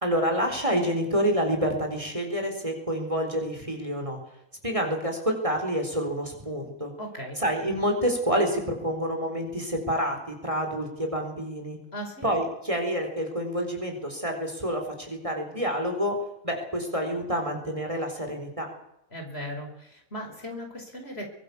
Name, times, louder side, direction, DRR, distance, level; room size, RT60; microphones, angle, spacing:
voice 1, 0.0-4.2 4.6-6.9 7.4-11.8 12.2-16.2 16.4-18.7, equal, 20° right, 3 dB, 4.3 m, -28 dB
voice 2, 7.0-7.4 11.9-12.3 19.1-21.2, equal, 45° left, 2 dB, 5.5 m, -37 dB
24.0 x 18.5 x 7.1 m, 0.84 s
omnidirectional pair, 1.5 m